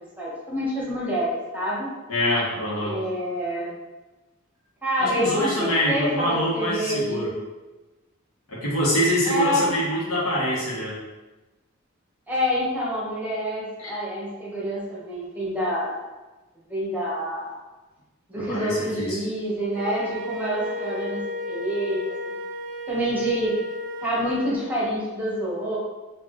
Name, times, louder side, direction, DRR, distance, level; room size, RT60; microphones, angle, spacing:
voice 1, 0.2-1.9 2.8-3.7 4.8-7.4 9.2-9.8 12.3-16.0 16.7-17.6 18.3-22.1 22.9-23.5 24.0-25.8, equal, 10° right, -7 dB, 1.1 m, -27 dB
voice 2, 2.1-3.0 5.0-7.3 8.5-11.0 13.8-13.9 18.4-19.2, equal, 85° left, -6 dB, 1.3 m, -25 dB
Wind instrument woodwind instrument, 19.7-24.6, left 1 dB, 40° right, 0.4 m, -33 dB
4.4 x 2.6 x 3.1 m, 1.1 s
head